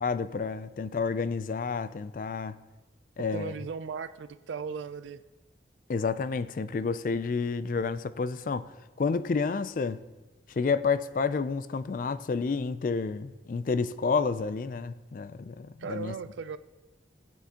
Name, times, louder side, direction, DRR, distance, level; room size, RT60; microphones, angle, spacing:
voice 1, 0.0-2.6 3.2-3.5 5.9-8.7 9.0-10.0 10.5-16.1, left 4 dB, 45° left, 0.3 m, -30 dB
voice 2, 3.3-5.2 15.8-16.6, right 5 dB, 90° right, 0.4 m, -37 dB
17.5 x 7.4 x 2.9 m
head